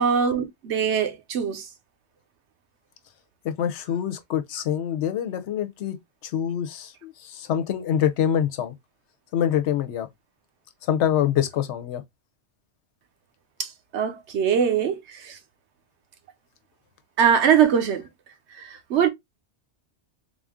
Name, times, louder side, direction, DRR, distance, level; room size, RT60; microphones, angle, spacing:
voice 1, 0.0-1.6 13.6-15.4 17.2-18.0 18.7-19.1, right 7 dB, 75° right, 1.0 m, -22 dB
voice 2, 3.4-6.0 6.2-8.7 9.3-10.1 10.9-12.0, left 9 dB, 85° left, 0.9 m, -25 dB
3.8 x 2.5 x 3.5 m
omnidirectional pair, 1.2 m